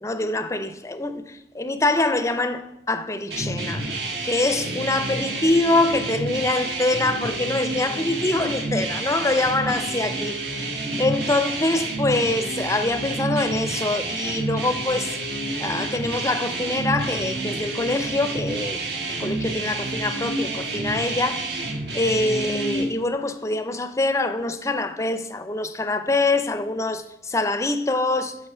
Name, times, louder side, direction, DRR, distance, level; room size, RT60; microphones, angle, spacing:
voice 1, 0.0-3.9 4.2-15.2 15.6-18.8 19.2-28.4, left 2 dB, 15° left, 0.5 m, -24 dB
sound 1, 3.3-22.8, right 2 dB, 65° right, 1.5 m, -29 dB
9.0 x 6.3 x 5.5 m
head